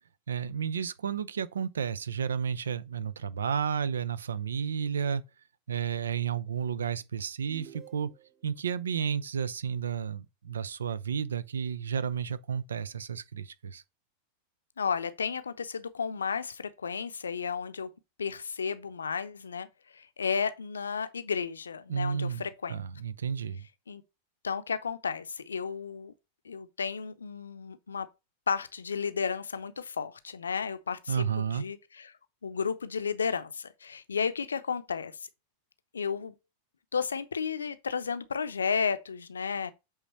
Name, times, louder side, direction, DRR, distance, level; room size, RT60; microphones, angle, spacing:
voice 1, 0.3-5.2 5.7-8.1 8.4-13.8 21.9-22.4 22.7-23.6 31.1-31.6, right 7 dB, 70° right, 0.6 m, -32 dB
sound 1, 7.5-8.5, right 8 dB, 20° right, 0.7 m, -51 dB
voice 2, 14.8-17.9 18.2-19.7 19.9-22.8 23.9-24.0 24.4-26.1 26.4-28.1 28.5-32.1 32.4-35.1 35.9-36.3 36.9-39.7, left 6 dB, 70° left, 0.6 m, -33 dB
8.1 x 3.7 x 4.3 m
figure-of-eight pair, 90°, 0 cm